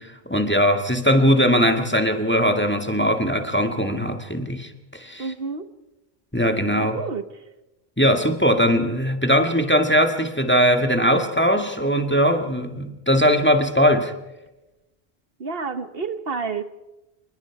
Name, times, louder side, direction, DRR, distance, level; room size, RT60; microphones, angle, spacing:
voice 1, 0.0-5.3 6.3-7.0 8.0-14.1, equal, 10° left, 5 dB, 1.8 m, -20 dB
voice 2, 5.2-5.7 6.7-7.3 15.4-16.6, right 4 dB, 65° right, 10 dB, 1.4 m, -29 dB
27.0 x 21.0 x 4.8 m, 0.98 s
omnidirectional pair, 1.1 m